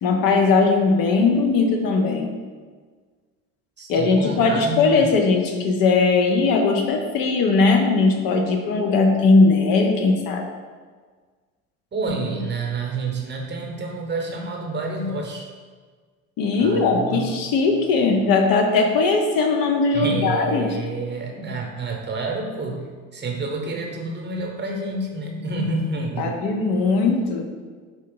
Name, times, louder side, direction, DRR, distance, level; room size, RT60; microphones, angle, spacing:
voice 1, 0.0-2.3 3.9-10.4 16.4-20.7 26.2-27.4, left 4 dB, 55° left, 3 dB, 0.7 m, -19 dB
voice 2, 3.8-5.1 11.9-15.5 16.6-17.4 19.9-26.4, right 2 dB, 25° right, 1 dB, 0.9 m, -28 dB
4.8 x 2.8 x 3.8 m, 1.5 s
hypercardioid pair, 65°, 42 cm